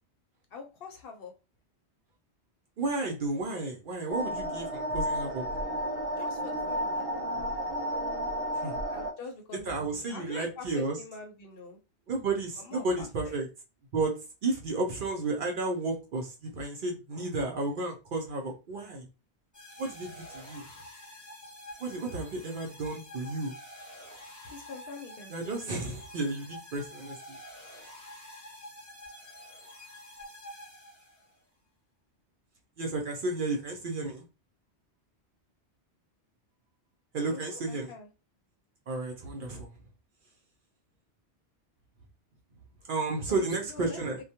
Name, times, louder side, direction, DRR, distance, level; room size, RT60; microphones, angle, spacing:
voice 1, 0.5-1.3 6.2-7.0 8.9-11.8 12.6-13.4 20.6-20.7 24.4-26.0 37.3-38.1 43.3-44.0, left 4 dB, 65° left, 4 dB, 0.7 m, -45 dB
voice 2, 2.8-5.5 8.6-8.7 9.7-10.9 12.1-13.5 13.9-19.1 19.8-20.6 21.8-23.5 25.3-27.4 32.8-34.2 37.1-37.9 38.9-39.7 42.9-44.2, right 3 dB, 60° right, 1 dB, 0.6 m, -32 dB
sound 1, 4.1-9.1, equal, 80° right, 1.0 m, -32 dB
sound 2, 19.5-31.4, left 1 dB, 20° left, 0.5 m, -48 dB
2.2 x 2.1 x 2.7 m, 0.29 s
omnidirectional pair, 1.2 m